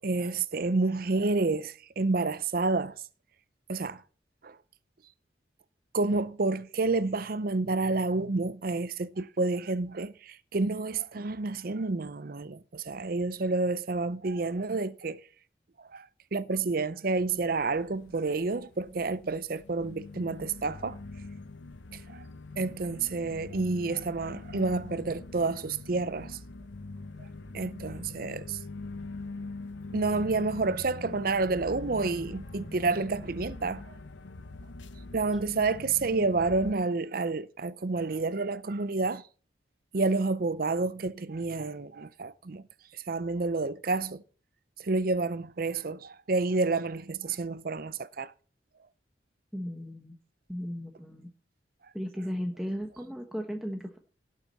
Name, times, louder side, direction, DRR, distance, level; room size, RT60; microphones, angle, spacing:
voice 1, 0.0-3.0 3.7-4.0 4.4-4.6 5.9-15.2 15.8-21.0 21.9-22.2 22.6-26.4 27.5-28.6 29.9-34.0 35.1-39.2 39.9-42.6 42.9-44.2 44.8-48.3, right 3 dB, 50° right, 0.6 m, -29 dB
sound 1, 17.2-36.7, left 2 dB, 85° left, 0.9 m, -43 dB
voice 2, 49.5-50.2 50.5-51.3 51.9-54.0, equal, ahead, 1.0 m, -36 dB
17.5 x 7.4 x 4.0 m
head